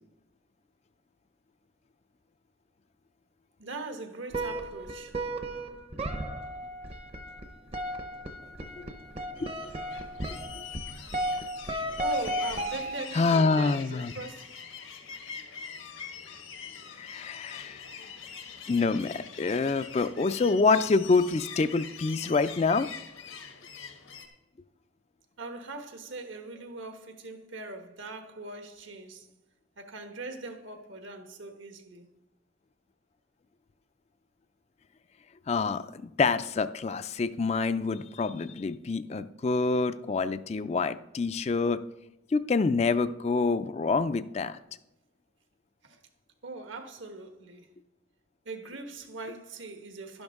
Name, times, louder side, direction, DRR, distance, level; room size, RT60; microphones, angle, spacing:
voice 1, 3.6-5.2 12.0-14.7 25.4-29.3 29.8-32.1 45.8-46.0 46.4-47.7 48.4-50.2, right 2 dB, 75° right, 1.3 m, -41 dB
sound 1, 4.3-13.3, right 1 dB, 30° right, 0.7 m, -35 dB
sound 2, 9.4-24.3, left 7 dB, 90° left, 1.5 m, -44 dB
voice 2, 13.1-14.1 17.0-17.8 18.7-22.9 35.5-41.8 42.3-44.6, left 4 dB, 35° left, 0.3 m, -26 dB
11.5 x 10.5 x 3.6 m
head